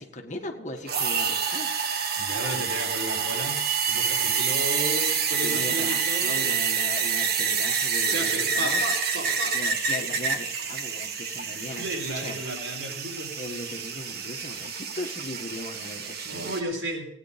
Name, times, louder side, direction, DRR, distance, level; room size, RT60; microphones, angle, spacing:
voice 1, 0.0-2.2 5.4-8.8 9.5-12.4 13.4-16.5, left 2 dB, 40° left, 4 dB, 1.8 m, -38 dB
sound 1, 0.9-16.6, right 6 dB, 60° right, 1.5 m, -27 dB
voice 2, 2.2-3.6 3.9-6.6 8.1-9.5 11.8-13.3 16.3-17.1, right 1 dB, 85° right, 1 dB, 4.1 m, -33 dB
17.0 x 9.7 x 5.2 m, 0.78 s
head